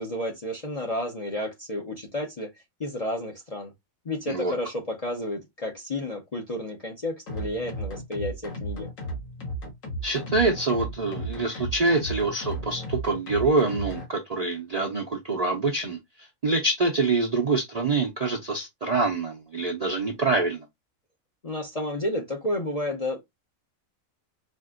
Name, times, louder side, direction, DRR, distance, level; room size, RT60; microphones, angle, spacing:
voice 1, 0.0-2.5 2.8-3.7 4.0-8.9 21.4-23.2, left 1 dB, 35° left, 0.6 m, -31 dB
sound 1, 7.3-14.1, right 1 dB, 70° left, 1.5 m, -34 dB
voice 2, 10.0-20.7, right 3 dB, 45° right, 0.5 m, -25 dB
4.4 x 2.5 x 2.4 m
omnidirectional pair, 1.4 m